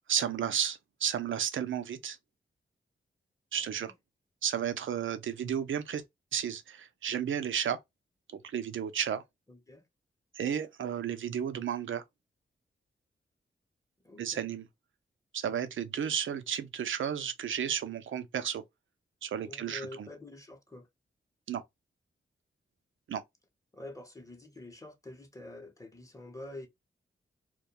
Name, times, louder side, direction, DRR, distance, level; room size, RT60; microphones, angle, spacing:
voice 1, 0.1-2.2 3.5-3.9 4.4-6.0 6.3-7.8 8.4-9.2 10.3-12.0 14.2-14.7 15.3-18.6 19.2-20.1 21.5-21.6 23.1-23.2, right 8 dB, 75° right, 0.5 m, -33 dB
voice 2, 9.5-9.8 14.0-14.5 19.5-20.9 23.7-26.7, left 2 dB, 15° left, 0.8 m, -46 dB
2.3 x 2.2 x 2.8 m
cardioid pair, 70°, 20 cm